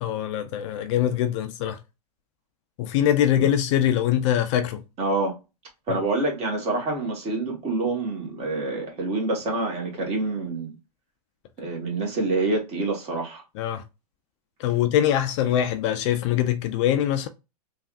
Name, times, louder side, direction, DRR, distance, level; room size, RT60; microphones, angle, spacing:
voice 1, 0.0-1.8 2.8-4.8 13.6-13.8 14.6-17.3, left 11 dB, 50° left, 0.4 m, -23 dB
voice 2, 5.0-5.3 5.9-10.8 11.6-13.4, right 2 dB, 30° right, 1.3 m, -27 dB
3.3 x 2.4 x 2.3 m
hypercardioid pair, 125°, 20 cm